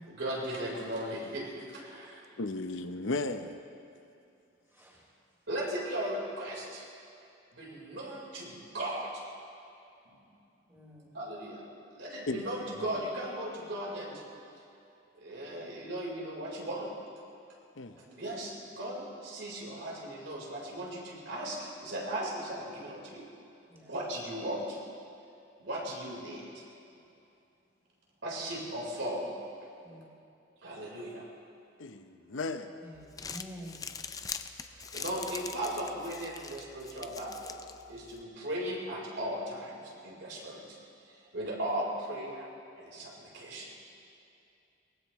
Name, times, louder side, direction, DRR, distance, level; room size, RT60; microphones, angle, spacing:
voice 1, 0.0-2.2 5.5-6.9 7.5-9.1 10.1-10.2 11.1-11.6 11.9-14.2 15.2-16.9 18.2-23.3 23.9-24.8 25.6-26.5 28.2-29.3 30.6-31.3 34.5-37.6 37.9-40.6 41.1-42.5 42.8-43.7, right 1 dB, 70° right, -3 dB, 4.3 m, -37 dB
voice 2, 2.4-3.6 12.3-12.4 12.8-12.9 17.8-18.0 31.8-32.7, left 2 dB, 80° left, 8 dB, 0.8 m, -35 dB
voice 3, 4.6-5.4 10.7-11.2 12.4-13.3 17.9-18.3 23.7-23.9 29.8-30.0 32.8-34.0, equal, 15° right, -5 dB, 3.6 m, -50 dB
Crumpling crinkling, 33.0-38.2, left 5 dB, 20° left, 0.4 m, -43 dB
23.0 x 19.5 x 3.2 m, 2.7 s
head